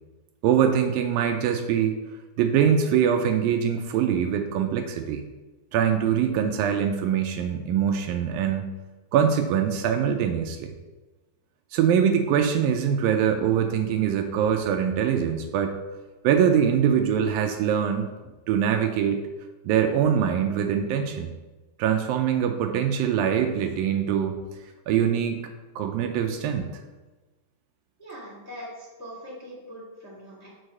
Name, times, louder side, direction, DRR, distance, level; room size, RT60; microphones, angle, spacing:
voice 1, 0.4-2.0 2.4-5.2 5.7-8.7 9.1-10.7 11.7-15.7 16.2-18.1 18.5-19.2 19.7-21.3 21.8-24.4 24.9-25.4 25.8-26.7, right 8 dB, 80° right, 5 dB, 2.1 m, -23 dB
voice 2, 28.0-30.5, equal, 5° left, -6 dB, 1.3 m, -41 dB
6.4 x 4.7 x 6.4 m, 1.2 s
omnidirectional pair, 4.5 m